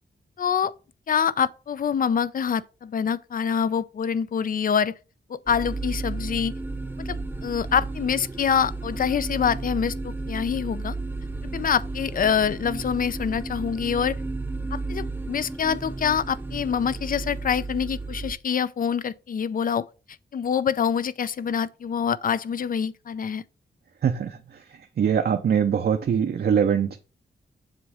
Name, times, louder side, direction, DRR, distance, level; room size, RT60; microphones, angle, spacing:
voice 1, 0.4-0.7 1.1-4.9 5.3-6.5 7.0-10.9 11.5-14.2 14.7-19.8 20.3-23.4, left 7 dB, 50° left, 0.4 m, -25 dB
sound 1, 5.5-18.3, right 3 dB, 10° right, 0.7 m, -33 dB
voice 2, 24.0-27.0, right 7 dB, 65° right, 0.6 m, -23 dB
7.4 x 3.1 x 4.8 m
wide cardioid pair, 95°, 18 cm